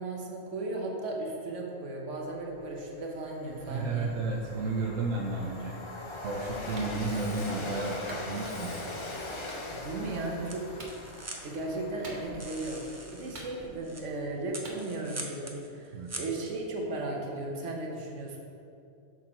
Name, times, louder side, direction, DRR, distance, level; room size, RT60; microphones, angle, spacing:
voice 1, 0.0-4.1 9.7-10.6 11.4-12.8 13.1-18.4, right 2 dB, 70° right, 0 dB, 1.3 m, -36 dB
Train, 2.6-2.7 3.0-13.5, left 1 dB, 30° left, 0.6 m, -41 dB
voice 2, 3.7-5.8 6.2-8.7 15.9-16.1, right 3 dB, 85° right, 0 dB, 1.0 m, -32 dB
Clapping, 6.7-6.9 8.1-8.3 9.5-9.6 10.8-11.0 12.0-12.5 13.3-13.9 14.6-14.8, right 2 dB, 40° right, 1.0 m, -45 dB
sound 1, 10.5-16.9, right 2 dB, 25° right, 0.4 m, -45 dB
6.3 x 6.3 x 4.3 m, 2.6 s
omnidirectional pair, 1.3 m